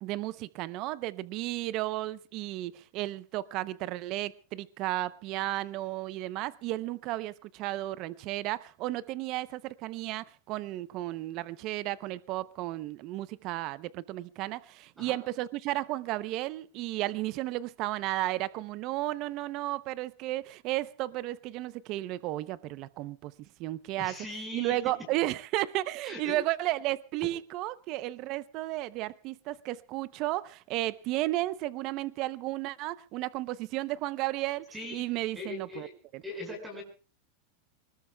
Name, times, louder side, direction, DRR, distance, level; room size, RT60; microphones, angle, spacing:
voice 1, 0.0-24.2 24.5-35.9 36.1-36.2, right 16 dB, 40° right, 0.7 m, -33 dB
voice 2, 24.0-24.8 26.0-26.4 34.7-35.0 35.4-35.9 36.2-36.8, left 2 dB, 10° right, 5.3 m, -40 dB
24.5 x 19.5 x 2.3 m
supercardioid pair, 155°, 0 cm